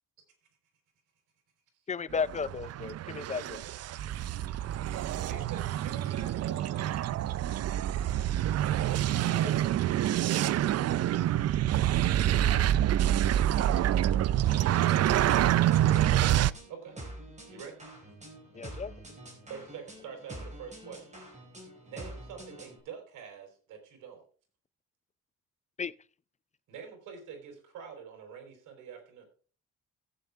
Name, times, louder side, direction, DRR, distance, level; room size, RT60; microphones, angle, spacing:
voice 1, 1.9-3.6 9.1-9.5 18.5-18.9 25.8-25.9, left 5 dB, 25° left, 0.5 m, -35 dB
sound 1, 2.1-16.5, right 12 dB, 55° right, 0.5 m, -27 dB
voice 2, 4.2-7.7 8.0-8.3 16.7-17.0 17.5-17.8 19.5-21.2 21.6-24.3 26.7-29.2, right 7 dB, 85° right, 4.1 m, -47 dB
voice 3, 12.1-14.2, left 7 dB, 70° left, 3.4 m, -54 dB
sound 2, 14.5-22.8, right 1 dB, 25° right, 4.9 m, -46 dB
15.0 x 8.1 x 3.5 m
cardioid pair, 90°, 30 cm